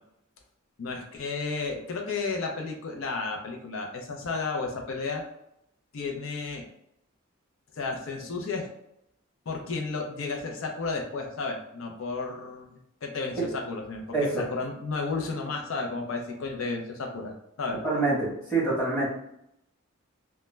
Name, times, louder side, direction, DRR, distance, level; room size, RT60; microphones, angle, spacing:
voice 1, 0.8-5.2 5.9-6.6 7.7-8.7 9.5-14.0 14.4-17.8, left 4 dB, 70° left, 2 dB, 0.4 m, -33 dB
voice 2, 14.1-14.5 17.8-19.1, right 3 dB, 5° left, -8 dB, 0.9 m, -26 dB
2.2 x 2.1 x 3.1 m, 0.76 s
head